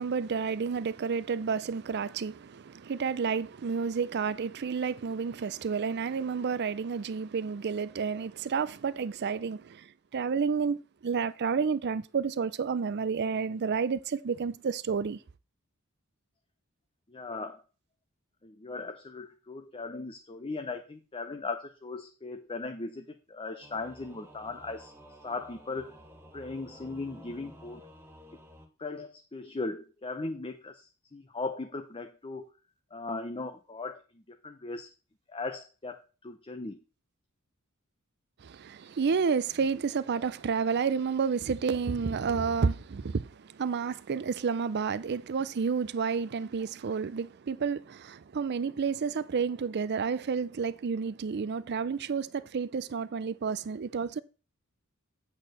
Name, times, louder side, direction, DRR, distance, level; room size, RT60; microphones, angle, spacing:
voice 1, 0.0-15.2 38.4-54.2, right 5 dB, 50° right, 0.4 m, -30 dB
voice 2, 17.1-17.6 18.4-24.9 25.2-26.0 26.3-27.8 28.8-32.5 32.9-34.0 34.3-34.9 35.3-36.8, left 3 dB, 25° left, 0.6 m, -38 dB
Singing / Musical instrument, 23.6-28.7, equal, 10° right, 1.2 m, -52 dB
8.2 x 4.3 x 6.5 m
head